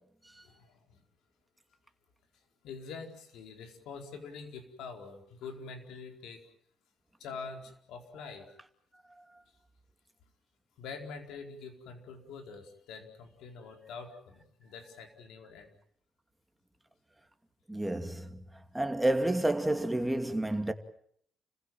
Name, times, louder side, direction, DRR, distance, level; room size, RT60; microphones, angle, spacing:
voice 1, 0.4-1.0 2.6-6.4 7.2-8.5 10.8-15.7 17.7-17.9, left 5 dB, 85° left, 4.5 m, -45 dB
voice 2, 17.7-18.4 18.7-20.7, right 1 dB, 10° right, 2.5 m, -29 dB
30.0 x 16.0 x 9.1 m
cardioid pair, 90°, 0 cm